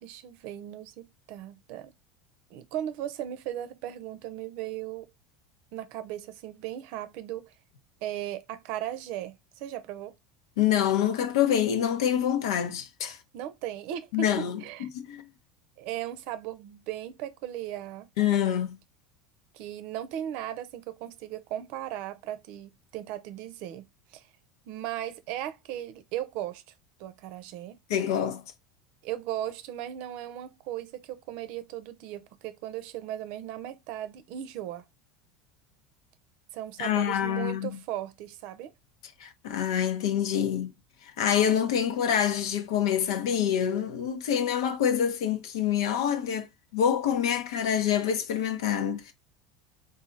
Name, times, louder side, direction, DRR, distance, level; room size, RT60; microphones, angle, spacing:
voice 1, 0.0-1.9 2.5-5.1 5.7-7.5 8.0-10.2 13.3-14.3 14.6-14.9 15.8-18.1 19.5-23.9 24.1-24.3 24.7-26.6 27.0-27.8 29.0-34.8 36.5-38.7, right 12 dB, 60° right, 0.6 m, -37 dB
voice 2, 10.6-13.2 14.1-15.2 18.2-18.7 27.9-28.4 36.8-37.8 39.2-40.7 41.2-46.5 46.7-49.1, left 9 dB, 75° left, 0.8 m, -26 dB
4.1 x 2.7 x 3.8 m
hypercardioid pair, 85°, 2 cm